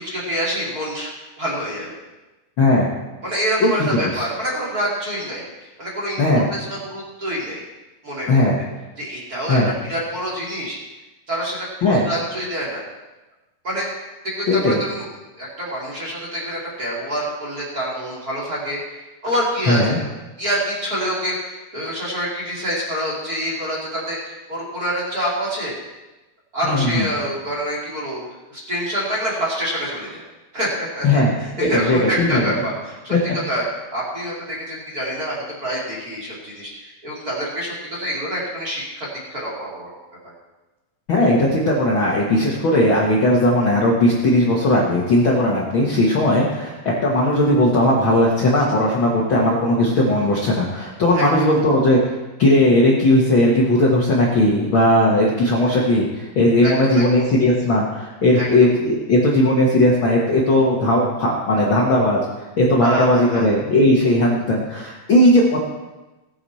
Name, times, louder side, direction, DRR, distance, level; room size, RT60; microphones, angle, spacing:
voice 1, 0.0-2.0 3.2-7.6 8.0-8.6 9.0-10.8 11.3-12.8 13.6-13.9 14.2-15.1 15.4-18.8 19.2-20.1 20.4-25.7 26.5-28.2 28.5-30.2 30.5-33.1 33.5-33.6 33.9-40.0 40.2-40.3 51.1-51.5 56.6-57.3 58.4-58.5 62.8-63.5, equal, 25° right, -5 dB, 2.8 m, -26 dB
voice 2, 2.6-2.9 3.6-4.3 6.2-6.5 8.3-8.6 9.5-9.7 11.8-12.1 14.5-14.8 19.7-20.0 26.6-27.1 31.0-31.3 31.6-32.6 33.1-33.3 41.1-62.2 62.6-65.6, left 1 dB, 75° left, -4 dB, 1.1 m, -17 dB
17.0 x 9.6 x 4.2 m, 1.1 s
omnidirectional pair, 4.7 m